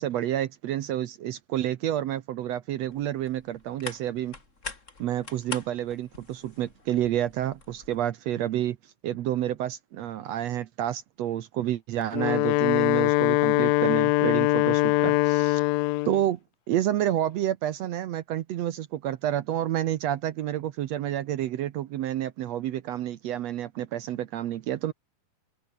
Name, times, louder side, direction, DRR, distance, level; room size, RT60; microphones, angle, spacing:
voice 1, 0.0-4.3 5.0-8.8 9.0-15.6 16.0-16.4 16.7-24.9, right 12 dB, 70° right, 1.6 m, -29 dB
sound 1, 2.9-8.1, left 4 dB, 25° left, 2.5 m, -43 dB
Wind instrument woodwind instrument, 12.0-16.2, left 19 dB, 85° left, 2.4 m, -22 dB
omnidirectional pair, 4.1 m